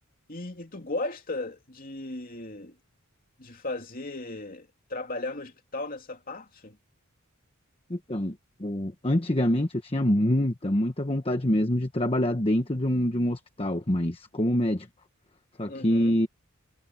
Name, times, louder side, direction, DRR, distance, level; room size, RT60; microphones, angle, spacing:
voice 1, 0.3-2.7 3.4-6.8 15.7-16.2, left 2 dB, 40° left, 3.0 m, -36 dB
voice 2, 7.9-8.3 8.6-14.9 15.6-16.3, left 1 dB, 25° left, 1.2 m, -25 dB
head